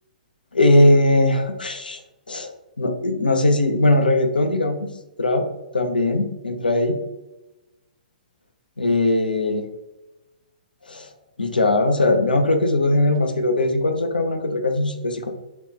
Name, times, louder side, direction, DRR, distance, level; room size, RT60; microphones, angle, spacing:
voice 1, 0.5-2.0 2.3-2.5 2.8-4.9 5.2-5.4 5.7-7.0 8.8-9.7 10.9-11.1 11.4-15.3, left 2 dB, 90° left, 6 dB, 0.4 m, -19 dB
2.8 x 2.2 x 3.6 m, 1.0 s
figure-of-eight pair, 120°, 5 cm